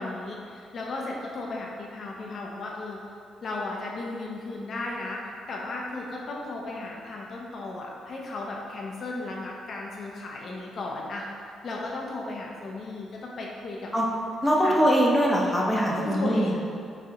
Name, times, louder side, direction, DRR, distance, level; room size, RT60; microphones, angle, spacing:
voice 1, 0.0-3.0 3.4-5.2 5.5-11.2 11.6-13.9 14.6-14.8 16.0-16.7, left 2 dB, 55° left, -2 dB, 0.5 m, -35 dB
voice 2, 14.4-16.6, equal, 5° left, -4 dB, 0.6 m, -22 dB
6.0 x 2.1 x 2.8 m, 2.3 s
cardioid pair, 90°, 0 cm